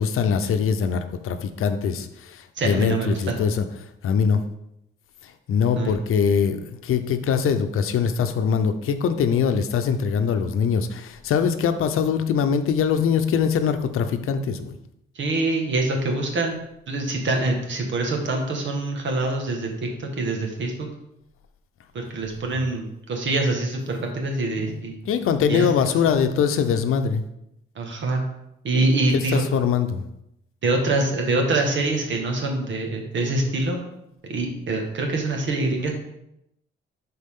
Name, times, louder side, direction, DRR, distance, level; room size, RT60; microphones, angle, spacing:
voice 1, 0.0-3.6 4.0-4.4 5.2-14.7 24.6-27.2 29.1-30.0, left 6 dB, 90° left, 9 dB, 0.7 m, -22 dB
voice 2, 2.6-3.4 5.7-6.0 15.1-16.5 16.9-20.9 21.9-25.0 25.5-25.7 26.1-26.2 27.7-28.2 28.6-29.4 30.6-33.8 34.3-35.9, right 2 dB, 60° right, 2 dB, 1.6 m, -25 dB
11.0 x 4.2 x 3.7 m, 0.82 s
wide cardioid pair, 170°, 21 cm